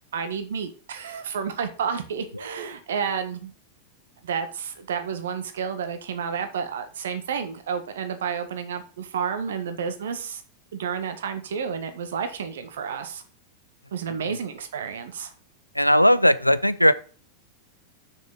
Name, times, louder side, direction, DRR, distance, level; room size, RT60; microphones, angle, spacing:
voice 1, 0.1-3.5 4.2-10.4 10.7-13.2 13.9-15.3, right 6 dB, 60° right, 9 dB, 1.5 m, -30 dB
voice 2, 15.7-16.9, equal, 90° left, 16 dB, 0.5 m, -18 dB
6.4 x 6.4 x 6.5 m, 0.39 s
figure-of-eight pair, 90°, 0 cm